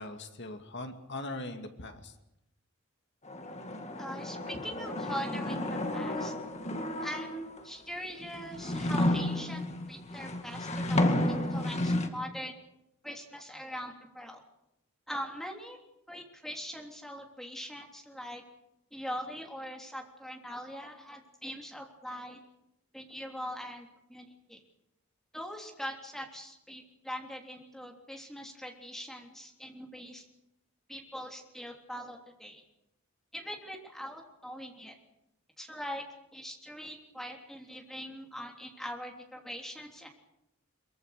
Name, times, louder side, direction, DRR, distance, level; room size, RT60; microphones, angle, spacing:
voice 1, 0.0-2.1, left 2 dB, 55° left, 5 dB, 2.5 m, -40 dB
sound 1, 3.3-7.6 8.2-12.1, left 1 dB, 30° left, 2.1 m, -32 dB
voice 2, 4.0-6.3 7.0-12.5 13.0-14.4 15.1-15.8 16.1-18.4 18.9-22.4 22.9-24.6 25.3-30.2 30.9-32.6 33.3-34.9 35.6-36.0 36.3-40.1, equal, ahead, 1 dB, 3.3 m, -42 dB
23.5 x 23.0 x 6.8 m, 0.85 s
head